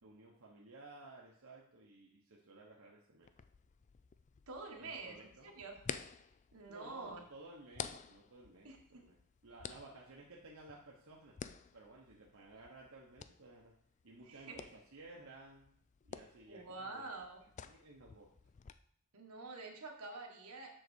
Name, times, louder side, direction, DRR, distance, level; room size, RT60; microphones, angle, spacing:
voice 1, 0.0-3.3 4.8-5.6 6.7-9.2 9.4-11.4 11.7-13.7 14.0-15.7 16.0-17.1 17.6-18.3, right 2 dB, 70° right, -3 dB, 1.2 m, -56 dB
sound 1, 3.2-18.7, left 7 dB, 35° left, 0.4 m, -51 dB
voice 2, 4.5-5.8 6.5-7.2 8.6-8.8 14.3-14.6 16.5-17.4 19.1-20.7, right 3 dB, 85° right, 1 dB, 1.6 m, -47 dB
7.7 x 4.0 x 6.4 m, 0.65 s
head